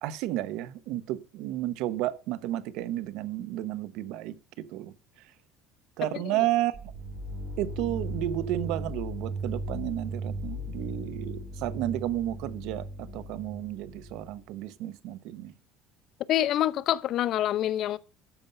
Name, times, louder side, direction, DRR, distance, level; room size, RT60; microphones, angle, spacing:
voice 1, 0.0-4.3 4.7-4.9 6.0-6.9 7.6-12.8 13.1-15.5, right 14 dB, 75° right, 0.9 m, -32 dB
sound 1, 6.7-14.5, right 1 dB, 50° right, 3.0 m, -37 dB
voice 2, 16.3-18.0, left 12 dB, 55° left, 0.6 m, -26 dB
13.0 x 5.4 x 5.6 m
cardioid pair, 120°, 0 cm